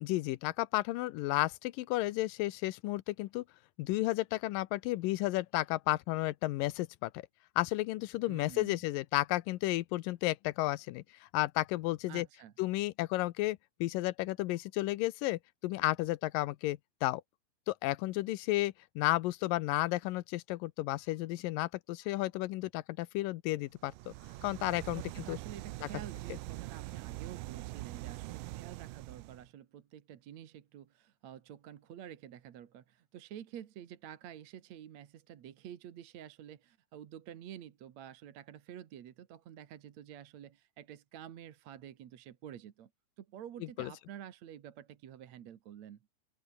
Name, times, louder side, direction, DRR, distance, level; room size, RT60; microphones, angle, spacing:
voice 1, 0.0-3.4 3.8-7.2 7.6-12.3 12.6-17.2 17.7-24.1 24.4-25.0 25.3-25.4 25.8-25.9 43.8-43.9, left 18 dB, 85° left, 2.4 m, -33 dB
voice 2, 8.2-8.8 12.1-12.5 24.9-42.9 43.2-46.0, right 10 dB, 60° right, 2.5 m, -49 dB
sound 1, 23.8-29.5, right 20 dB, 80° right, 2.1 m, -43 dB
open air
omnidirectional pair, 3.9 m